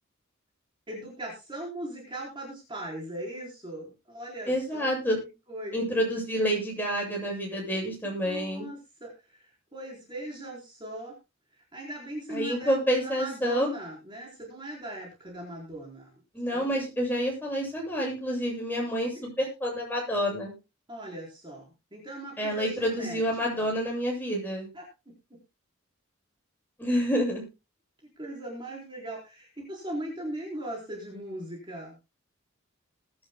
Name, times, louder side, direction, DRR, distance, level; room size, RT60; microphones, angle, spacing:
voice 1, 0.9-4.9 5.5-6.0 8.0-11.1 11.5-16.2 16.5-16.8 18.9-19.3 20.9-23.2 23.5-23.7 24.7-24.8 28.2-32.0, right 1 dB, 25° right, -2 dB, 4.2 m, -39 dB
voice 2, 4.5-5.2 5.7-8.7 12.3-13.7 16.3-20.5 22.4-24.7 26.8-27.4, equal, 10° left, -1 dB, 7.9 m, -28 dB
21.5 x 11.5 x 2.3 m, 0.27 s
head